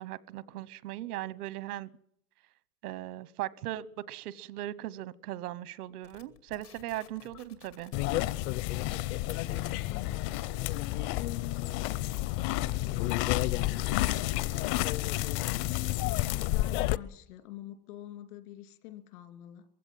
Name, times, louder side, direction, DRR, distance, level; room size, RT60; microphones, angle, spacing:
voice 1, 0.0-1.9 2.8-7.9, right 14 dB, 80° right, 1.1 m, -38 dB
sound 1, 6.0-11.0, left 12 dB, 90° left, 2.8 m, -55 dB
sound 2, 7.9-17.0, left 16 dB, 50° left, 0.8 m, -30 dB
voice 2, 10.7-14.3 15.4-19.6, left 13 dB, 75° left, 2.9 m, -45 dB
22.0 x 16.0 x 7.7 m
supercardioid pair, 135°, 45 cm